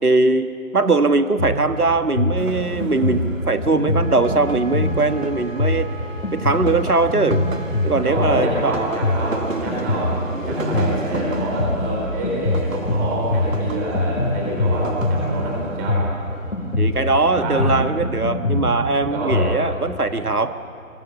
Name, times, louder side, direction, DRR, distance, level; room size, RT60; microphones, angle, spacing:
voice 1, 0.0-5.9 6.3-7.4 7.8-8.8 16.8-20.6, right 3 dB, 85° right, 9 dB, 1.5 m, -20 dB
Drum kit, 1.4-19.6, left 2 dB, 60° left, 5.0 m, -24 dB
sound 1, 2.4-17.9, right 3 dB, 60° right, 2.1 m, -35 dB
Wind instrument woodwind instrument, 3.9-8.7, right 2 dB, 45° right, 2.6 m, -39 dB
voice 2, 8.0-10.2 10.5-16.0 17.4-17.8 19.1-19.6, right 1 dB, 10° right, -3 dB, 4.2 m, -26 dB
29.5 x 23.0 x 7.2 m, 2.4 s
figure-of-eight pair, 165°, 44 cm